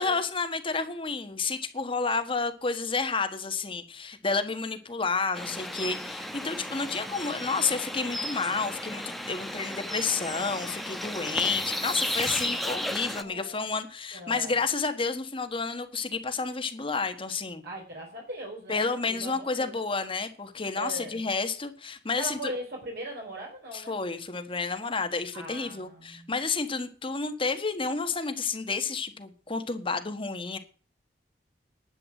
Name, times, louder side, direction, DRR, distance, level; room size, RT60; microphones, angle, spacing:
voice 1, 0.0-17.6 18.7-22.4 23.7-30.6, left 4 dB, 30° left, 1.5 m, -30 dB
sound 1, 5.3-13.2, left 1 dB, ahead, 1.0 m, -34 dB
voice 2, 13.0-13.6 14.1-14.6 17.6-19.8 20.7-21.2 22.2-24.0 25.3-26.3, right 1 dB, 60° right, 4.1 m, -40 dB
11.0 x 8.4 x 7.7 m
head